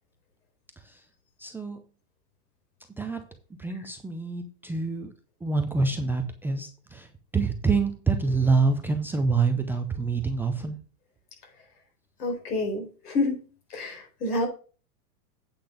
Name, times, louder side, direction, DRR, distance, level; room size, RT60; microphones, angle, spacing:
voice 1, 1.4-1.8 3.0-3.2 3.6-5.1 5.4-7.1 7.3-10.8, right 4 dB, 5° right, 4 dB, 0.4 m, -26 dB
voice 2, 12.2-13.4 13.7-14.5, left 2 dB, 85° left, 3 dB, 4.3 m, -28 dB
8.7 x 5.9 x 5.0 m, 0.37 s
supercardioid pair, 135°, 46 cm